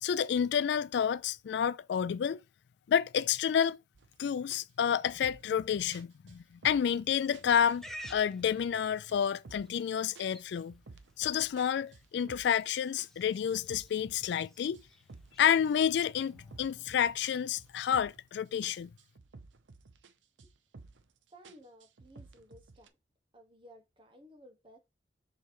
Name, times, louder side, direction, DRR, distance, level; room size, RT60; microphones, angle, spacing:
voice 1, 0.0-2.4 2.9-3.8 4.2-7.8 8.1-10.7 11.2-14.8 15.4-18.9, left 8 dB, 70° left, 0.3 m, -29 dB
sound 1, 3.9-4.2 4.5-7.0 7.3-8.8 9.1-9.8 10.1-12.7 13.0-15.5 15.8-18.3 18.6-20.1 20.4-21.1 21.4-22.9, right 3 dB, 85° right, 0.7 m, -54 dB
Livestock farm animals working animals, 7.2-18.1, equal, ahead, 0.6 m, -55 dB
voice 2, 21.3-22.9 23.3-24.8, equal, 30° right, 1.3 m, -56 dB
6.9 x 3.2 x 4.5 m
head